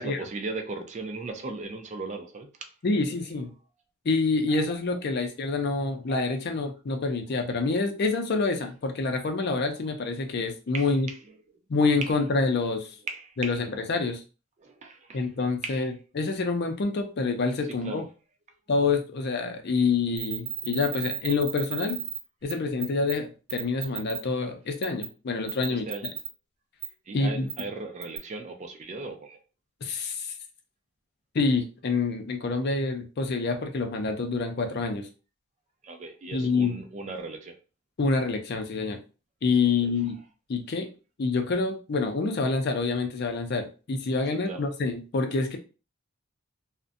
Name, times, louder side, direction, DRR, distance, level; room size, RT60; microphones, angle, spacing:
voice 1, 0.0-2.7 8.9-10.0 10.7-11.3 12.0-12.1 13.0-13.6 14.6-15.3 15.6-15.9 17.6-18.1 25.7-26.1 27.1-29.4 35.8-37.6 39.8-39.9 44.3-44.6, right 3 dB, 35° right, 5 dB, 0.4 m, -38 dB
voice 2, 2.8-3.5 4.0-11.1 11.7-12.9 13.4-13.6 13.9-14.2 15.1-15.9 16.2-18.0 18.7-22.0 22.4-25.9 27.1-27.5 29.8-30.3 31.3-35.1 36.3-36.8 38.0-39.0 39.4-40.2 40.5-40.9 41.2-45.6, left 3 dB, 50° left, 5 dB, 0.4 m, -27 dB
sound 1, 20.2-22.2 22.5-22.6 22.8-23.1 23.5-24.2 24.8-25.1 25.5-26.3 26.8-26.9 27.5-27.6 28.0-28.2, right 12 dB, 50° right, 0.8 m, -33 dB
2.5 x 2.1 x 2.5 m, 0.34 s
head